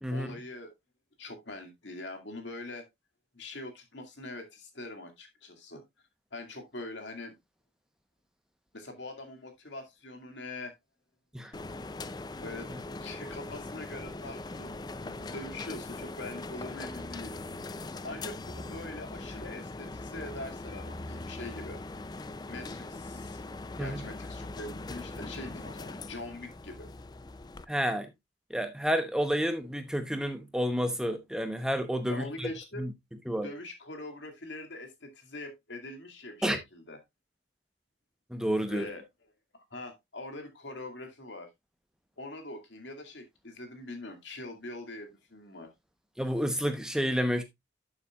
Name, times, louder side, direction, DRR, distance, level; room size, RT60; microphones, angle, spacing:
voice 1, 0.1-0.7 1.2-2.9 3.3-5.8 6.3-7.3 8.7-10.7 12.4-12.7 13.0-17.5 17.9-21.8 22.5-23.4 23.8-26.9 32.1-32.9 33.4-37.0 38.7-39.0 39.5-41.5 42.2-45.7, left 2 dB, 75° left, 2.3 m, -43 dB
sound 1, 11.5-27.7, left 2 dB, 20° left, 0.4 m, -41 dB
voice 2, 27.7-28.1 28.5-32.5 32.8-32.9 33.3-33.5 36.4-36.6 38.3-38.9 46.2-47.4, equal, 5° right, 0.9 m, -30 dB
12.0 x 7.0 x 2.4 m
head